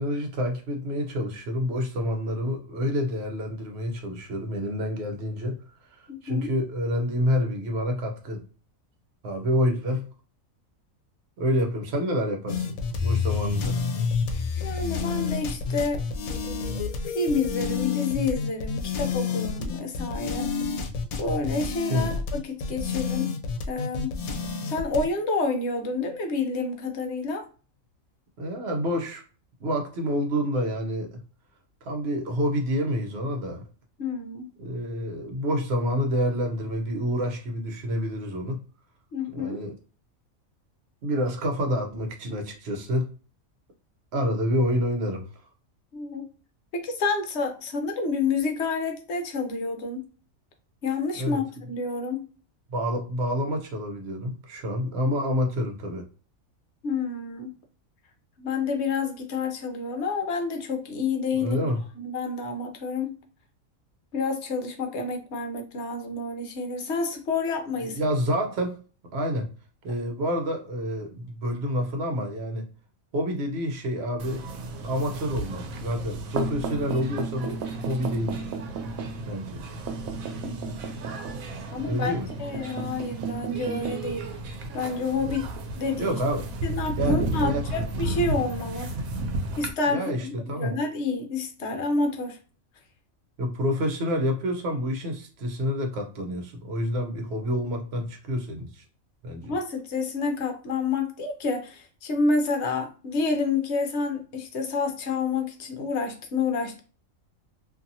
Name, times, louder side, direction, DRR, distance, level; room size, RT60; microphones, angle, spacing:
voice 1, 0.0-5.6 5.9-8.4 9.2-10.1 11.4-13.8 21.9-22.2 28.4-29.2 29.6-31.2 31.8-33.6 34.6-38.6 39.3-39.7 41.0-43.1 44.1-45.3 51.2-51.4 52.7-56.1 61.4-61.8 67.9-68.8 69.1-69.5 69.8-72.6 73.1-74.4 74.8-78.4 79.3-79.6 81.8-82.3 86.0-86.5 87.0-87.7 89.9-90.7 93.4-98.8 99.2-99.6, equal, 55° right, 0.9 m, -28 dB
voice 2, 6.1-6.5 14.6-16.0 17.1-20.5 21.2-23.3 23.7-24.2 24.6-27.5 34.0-34.5 39.1-39.7 45.9-46.3 46.7-50.1 50.8-52.3 56.8-57.5 58.4-61.6 61.9-63.2 64.1-68.0 80.4-81.0 81.7-82.1 82.4-84.3 84.7-85.5 85.7-86.2 86.6-88.9 89.6-92.4 99.4-106.8, left 4 dB, 60° left, 0.9 m, -29 dB
sound 1, 12.5-25.1, left 5 dB, 85° left, 1.0 m, -29 dB
sound 2, 74.2-89.7, right 2 dB, 85° right, 1.0 m, -32 dB
2.6 x 2.6 x 2.6 m
omnidirectional pair, 1.4 m